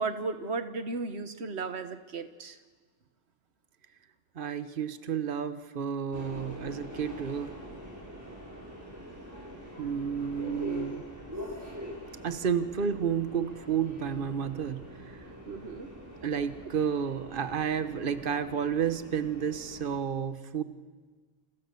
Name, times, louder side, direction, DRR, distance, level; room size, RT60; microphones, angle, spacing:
voice 1, 0.0-2.6 15.4-15.9, right 3 dB, 90° right, 9 dB, 1.5 m, -35 dB
voice 2, 4.3-7.6 9.8-11.0 12.2-15.2 16.2-20.6, right 7 dB, 55° right, 10 dB, 1.3 m, -31 dB
Subway metro underground, 6.1-19.9, equal, 15° right, 6.1 m, -44 dB
29.0 x 27.0 x 6.9 m, 1.4 s
omnidirectional pair, 1.1 m